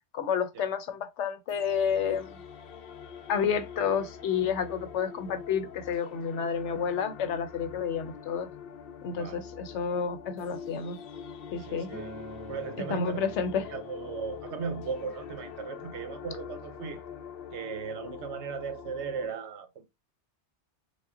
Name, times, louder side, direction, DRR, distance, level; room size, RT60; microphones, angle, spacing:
voice 1, 0.1-2.4 3.3-8.5 9.0-11.0 11.5-11.9 12.9-13.6, left 7 dB, 80° left, 1.0 m, -30 dB
sound 1, 1.5-19.3, left 7 dB, 65° left, 0.7 m, -44 dB
voice 2, 9.1-9.4 11.7-12.2 12.5-13.2 13.7-17.0 17.5-19.9, right 5 dB, 80° right, 1.0 m, -36 dB
Acoustic guitar, 11.9-17.1, equal, 20° left, 0.7 m, -49 dB
5.3 x 2.2 x 3.7 m
omnidirectional pair, 1.2 m